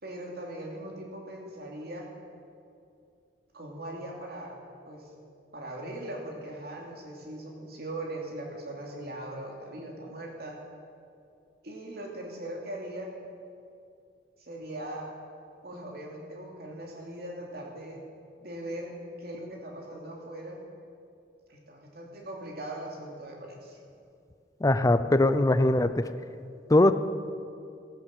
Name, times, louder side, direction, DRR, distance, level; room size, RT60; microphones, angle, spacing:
voice 1, 0.0-2.1 3.5-4.6 4.9-5.1 5.5-10.6 11.6-13.1 14.5-15.1 15.6-18.0 18.4-20.6 21.5-23.8, right 1 dB, 60° right, 0 dB, 2.9 m, -40 dB
voice 2, 24.6-26.0 26.7-26.9, left 1 dB, 20° left, 11 dB, 0.5 m, -21 dB
14.5 x 12.0 x 7.7 m, 2.5 s
head